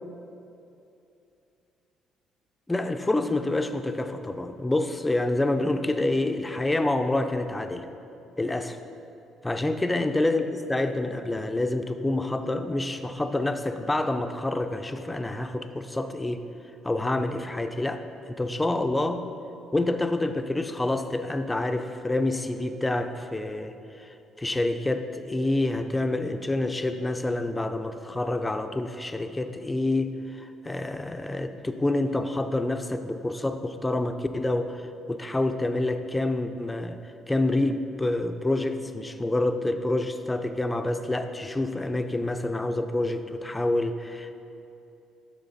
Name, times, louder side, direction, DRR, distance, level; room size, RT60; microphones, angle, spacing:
voice 1, 2.7-7.9 8.4-8.8 9.4-16.4 16.8-19.2 19.7-37.0 37.3-44.4, left 2 dB, 10° left, 7 dB, 0.5 m, -27 dB
11.5 x 6.5 x 4.1 m, 2.7 s
cardioid pair, 110°, 0 cm